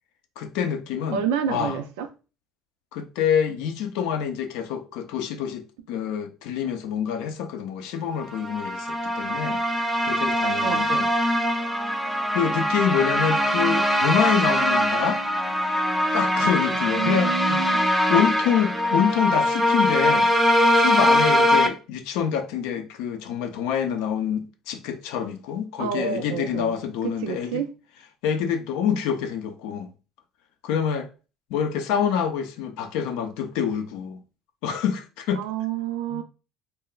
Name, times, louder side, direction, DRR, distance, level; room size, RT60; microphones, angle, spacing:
voice 1, 0.4-1.8 2.9-9.6 10.0-11.1 12.3-15.2 16.1-17.8 18.1-20.3 20.7-27.6 28.2-29.9 30.6-31.1 31.5-34.2 34.6-35.4 36.1-36.2, left 8 dB, 80° left, 0.4 m, -26 dB
voice 2, 1.1-2.1 10.6-10.9 16.7-17.9 25.8-27.7 35.4-36.2, right 8 dB, 85° right, 0.4 m, -29 dB
sound 1, 8.3-21.7, equal, 5° right, 0.5 m, -22 dB
2.2 x 2.0 x 3.7 m
hypercardioid pair, 70°, 0 cm